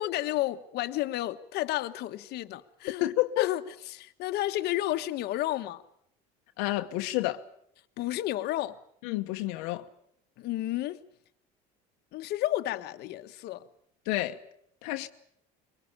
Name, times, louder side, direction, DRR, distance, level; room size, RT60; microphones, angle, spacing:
voice 1, 0.0-3.0 3.4-3.6 3.9-5.8 8.0-8.8 10.4-11.0 12.1-13.6, left 15 dB, 65° left, 1.2 m, -31 dB
voice 2, 3.0-3.5 6.6-7.4 9.0-9.9 14.1-14.4 14.8-15.1, left 17 dB, 90° left, 1.1 m, -29 dB
23.0 x 20.0 x 8.6 m
cardioid pair, 115°, 18 cm